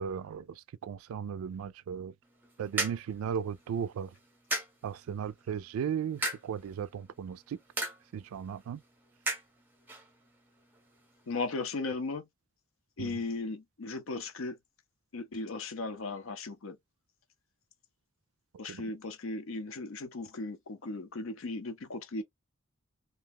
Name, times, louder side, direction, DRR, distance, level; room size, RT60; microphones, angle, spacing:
voice 1, 0.0-2.1 2.6-4.1 4.8-7.6 8.1-8.8 13.0-13.2 18.7-18.9, right 7 dB, 90° right, 0.3 m, -36 dB
sound 1, 2.2-11.7, right 2 dB, 10° right, 0.7 m, -40 dB
voice 2, 11.3-12.3 13.0-14.6 15.1-16.8 18.6-22.2, left 3 dB, 75° left, 0.6 m, -36 dB
2.7 x 2.1 x 3.4 m
head